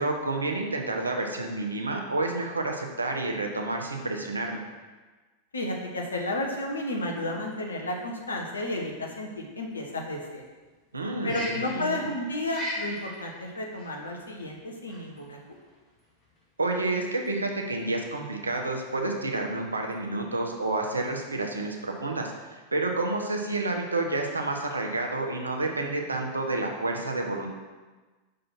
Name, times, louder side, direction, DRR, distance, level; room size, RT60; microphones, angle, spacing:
voice 1, 0.0-4.6 10.9-12.0 16.6-27.5, right 2 dB, 80° right, 2 dB, 0.8 m, -29 dB
voice 2, 5.5-10.4 11.2-15.4, left 1 dB, 75° left, 1 dB, 1.1 m, -32 dB
sound 1, 7.1-21.5, equal, 30° left, 1.9 m, -42 dB
5.7 x 3.8 x 5.8 m, 1.3 s
figure-of-eight pair, 90°, 0 cm